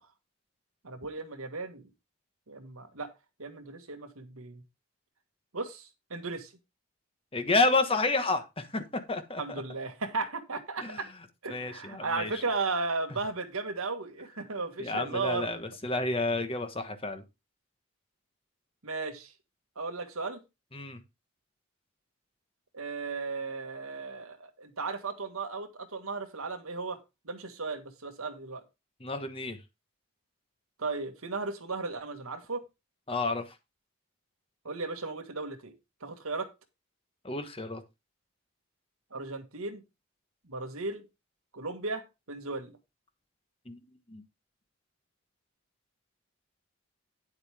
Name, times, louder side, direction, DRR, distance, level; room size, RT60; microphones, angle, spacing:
voice 1, 0.8-1.8 2.5-3.1 3.4-4.6 5.5-6.5 9.4-11.1 11.4-15.5 18.8-19.3 19.7-20.4 22.7-27.0 27.2-28.6 30.8-32.6 34.6-35.7 36.0-36.5 39.1-39.8 40.5-41.0 41.5-42.8, right 3 dB, 80° right, 1.7 m, -35 dB
voice 2, 7.3-9.6 10.8-11.0 11.5-12.4 14.8-17.2 20.7-21.0 29.0-29.6 33.1-33.5 37.2-37.8 43.7-43.8 44.1-44.2, left 3 dB, 25° left, 1.2 m, -30 dB
9.9 x 8.0 x 3.5 m
head